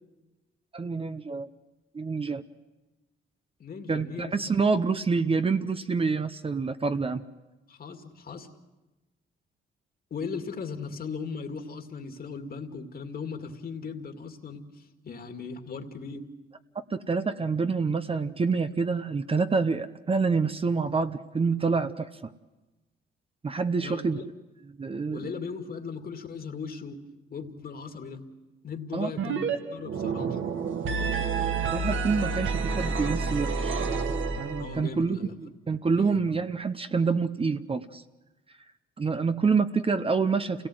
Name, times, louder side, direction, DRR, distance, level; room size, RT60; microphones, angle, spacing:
voice 1, 0.7-1.5 1.9-2.4 3.9-7.2 16.7-22.1 23.4-24.2 24.8-25.2 28.9-29.1 31.7-33.8 34.3-38.0 39.0-40.7, right 4 dB, 25° right, 10 dB, 0.8 m, -27 dB
voice 2, 3.6-4.5 7.7-8.5 10.1-16.2 23.8-24.2 25.1-27.0 27.3-28.3 28.6-30.4 34.6-35.3 35.9-36.4, left 5 dB, 45° left, 5 dB, 2.3 m, -38 dB
sound 1, 29.2-29.6 29.8-34.8, right 4 dB, 70° right, 1.8 m, -29 dB
28.5 x 18.0 x 7.9 m, 1.1 s
cardioid pair, 95°, 21 cm